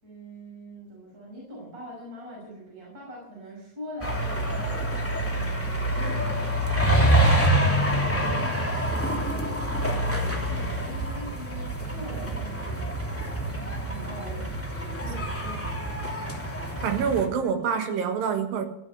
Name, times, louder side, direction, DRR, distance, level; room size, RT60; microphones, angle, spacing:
voice 1, 0.0-4.9 5.3-7.3 7.7-12.8 13.8-16.3 17.4-17.7, right 1 dB, 25° right, -3 dB, 6.2 m, -43 dB
sound 1, 4.0-17.2, right 1 dB, 5° left, 2.2 m, -26 dB
voice 2, 16.8-18.7, right 7 dB, 80° right, 7 dB, 3.3 m, -26 dB
15.0 x 9.4 x 9.2 m, 0.81 s
omnidirectional pair, 4.0 m